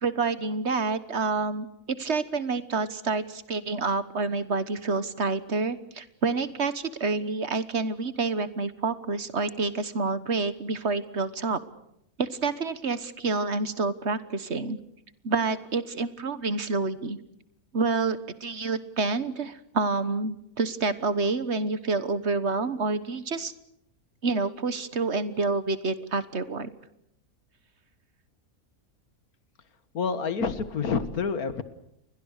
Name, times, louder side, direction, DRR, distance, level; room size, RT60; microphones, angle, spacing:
voice 1, 0.0-11.6 12.2-14.8 15.2-17.2 17.7-23.5 24.2-26.7, right 3 dB, 50° right, 14 dB, 1.5 m, -28 dB
voice 2, 29.9-31.6, left 5 dB, 80° left, 13 dB, 2.0 m, -28 dB
29.0 x 22.0 x 6.5 m, 0.79 s
omnidirectional pair, 1.5 m